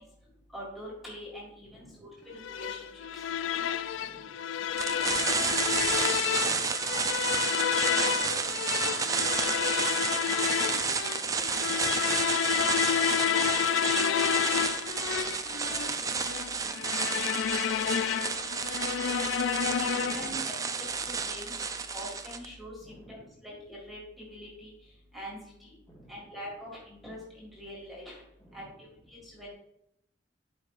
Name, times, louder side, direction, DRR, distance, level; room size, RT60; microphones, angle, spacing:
voice 1, 0.5-2.9 3.1-3.2 13.1-13.4 19.1-19.3 19.9-21.5 21.9-23.2 23.4-24.0 24.3-24.7 25.1-25.7 26.1-28.1 28.5-28.6 29.1-29.5, equal, ahead, -5 dB, 1.9 m, -44 dB
voice 2, 1.6-2.1 3.9-4.4 4.9-9.0 9.4-12.5 13.0-18.5 19.3-20.6 22.8-23.4 25.9-26.4 28.4-29.1, equal, 25° left, -3 dB, 2.2 m, -52 dB
sound 1, 2.4-20.4, left 9 dB, 90° left, 0.4 m, -30 dB
sound 2, 4.8-22.5, right 5 dB, 20° right, 0.4 m, -31 dB
12.0 x 4.9 x 2.4 m, 0.79 s
head